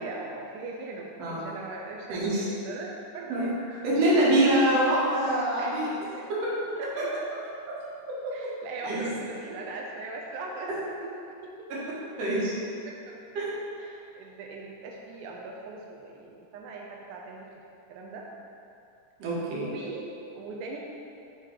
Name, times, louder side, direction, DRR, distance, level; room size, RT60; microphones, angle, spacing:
voice 1, 0.0-3.6 4.1-4.7 5.6-5.9 6.1-6.3 6.8-7.2 8.3-10.7 11.0-11.1 11.4-11.5 12.9-13.5 13.8-17.5 17.9-18.3 19.6-20.8, right 3 dB, 90° right, -1 dB, 2.2 m, -40 dB
voice 2, 2.1-2.5 3.3-5.9 6.3-6.5 7.8-8.3 8.8-9.0 11.7-11.8 12.2-12.5 13.4-13.5 19.2-19.7, right 1 dB, 60° right, -7 dB, 2.3 m, -25 dB
6.9 x 3.8 x 4.5 m, 2.6 s
omnidirectional pair, 3.6 m